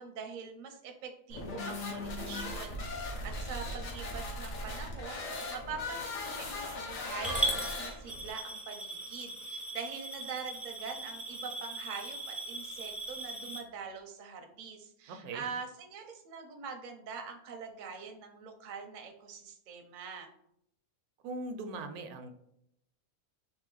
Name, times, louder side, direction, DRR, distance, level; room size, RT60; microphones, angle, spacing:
voice 1, 0.0-20.3, right 5 dB, 50° right, 4 dB, 0.6 m, -44 dB
sound 1, 1.3-8.3, left 2 dB, 65° left, 1.4 m, -38 dB
Coin (dropping) / Glass, 7.2-13.6, right 2 dB, ahead, 0.4 m, -38 dB
voice 2, 15.1-15.5 21.2-22.3, right 2 dB, 80° right, 7 dB, 1.1 m, -40 dB
4.1 x 3.1 x 3.8 m, 0.75 s
omnidirectional pair, 1.5 m